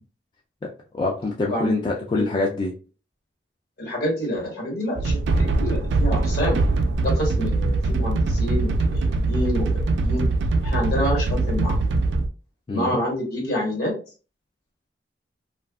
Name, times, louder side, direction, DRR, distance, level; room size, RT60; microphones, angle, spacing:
voice 1, 0.9-2.7 12.7-13.0, left 3 dB, 25° left, -1 dB, 0.3 m, -25 dB
voice 2, 1.5-1.8 2.1-2.3 3.8-6.6 7.0-10.3 10.6-11.8 12.7-13.9, equal, 60° left, 0 dB, 1.3 m, -27 dB
sound 1, 5.0-12.3, right 2 dB, 80° right, 0.4 m, -22 dB
2.7 x 2.4 x 2.2 m, 0.36 s
head